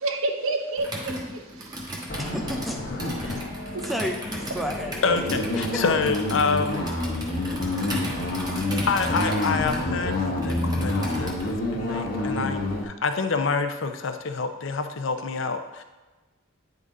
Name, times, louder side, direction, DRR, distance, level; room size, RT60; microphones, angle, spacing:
voice 1, 0.0-2.2 3.7-3.9, right 2 dB, 80° right, 5 dB, 0.7 m, -30 dB
Computer keyboard, 0.8-11.5, right 1 dB, 20° right, 1.0 m, -36 dB
sound 1, 2.1-12.8, left 2 dB, 45° left, 0.9 m, -28 dB
voice 2, 2.2-3.4 3.8-5.8, equal, ahead, 3 dB, 0.5 m, -33 dB
voice 3, 5.0-6.9 8.9-10.2 10.4-15.8, left 4 dB, 65° left, 7 dB, 0.6 m, -27 dB
9.3 x 3.9 x 3.8 m, 1.2 s
head